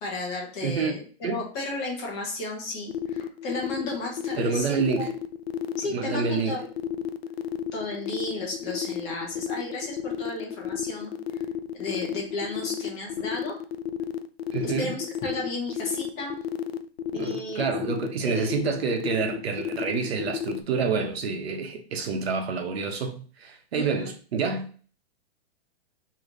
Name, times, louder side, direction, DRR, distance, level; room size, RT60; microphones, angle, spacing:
voice 1, 0.0-1.0 1.3-5.1 5.8-6.7 7.7-11.4 11.8-13.6 14.6-16.4 17.1-17.7 18.2-18.5 23.7-24.1, left 2 dB, 20° left, -1 dB, 1.0 m, -34 dB
voice 2, 0.6-0.9 1.2-1.4 4.4-5.1 5.9-6.6 14.5-14.9 17.1-24.7, right 5 dB, 75° right, 4 dB, 1.1 m, -28 dB
sound 1, 2.9-20.6, left 10 dB, 75° left, 0.5 m, -31 dB
3.2 x 3.2 x 3.9 m, 0.41 s
hypercardioid pair, 175°, 31 cm